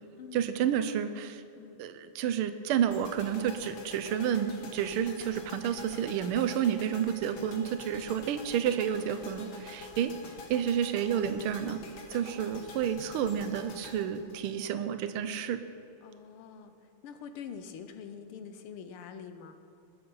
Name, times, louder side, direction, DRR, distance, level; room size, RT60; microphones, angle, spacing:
voice 1, 0.3-1.4 1.8-10.1 10.5-11.8 12.1-15.6, right 9 dB, 80° right, 10 dB, 1.5 m, -30 dB
voice 2, 1.5-1.8 8.0-8.6 16.0-16.7 17.0-19.6, left 7 dB, 85° left, 8 dB, 1.7 m, -45 dB
sound 1, 2.9-15.1, left 3 dB, 55° left, 1.7 m, -47 dB
20.5 x 7.0 x 5.5 m, 2.6 s
omnidirectional pair, 2.4 m